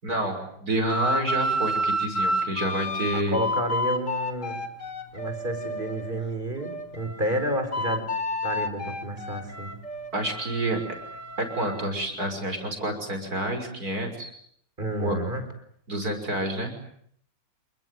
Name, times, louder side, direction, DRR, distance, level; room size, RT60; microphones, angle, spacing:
voice 1, 0.0-3.4 10.1-10.8 11.4-14.3 15.0-15.2 15.9-16.7, right 1 dB, 55° right, 6 dB, 6.4 m, -28 dB
sound 1, 0.9-6.2 6.6-11.9, equal, 45° left, 2.6 m, -30 dB
voice 2, 3.1-4.6 5.1-8.1 8.4-9.8 14.8-15.5, right 1 dB, 25° right, 8 dB, 4.6 m, -30 dB
28.5 x 21.5 x 9.3 m, 0.68 s
omnidirectional pair, 1.9 m